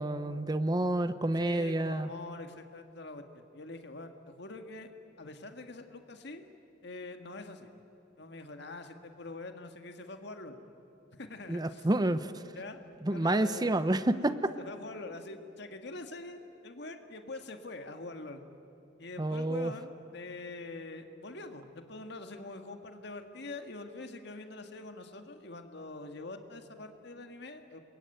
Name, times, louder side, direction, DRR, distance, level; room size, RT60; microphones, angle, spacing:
voice 1, 0.0-2.1 11.5-12.3 13.0-14.5 19.2-19.7, right 1 dB, 20° right, 12 dB, 0.7 m, -29 dB
voice 2, 1.4-4.9 5.2-6.4 6.8-7.7 8.2-10.6 11.1-11.9 12.6-12.8 13.1-14.2 14.6-18.4 19.0-27.8, left 2 dB, 65° left, 6 dB, 1.9 m, -44 dB
28.5 x 22.5 x 9.2 m, 2.9 s
head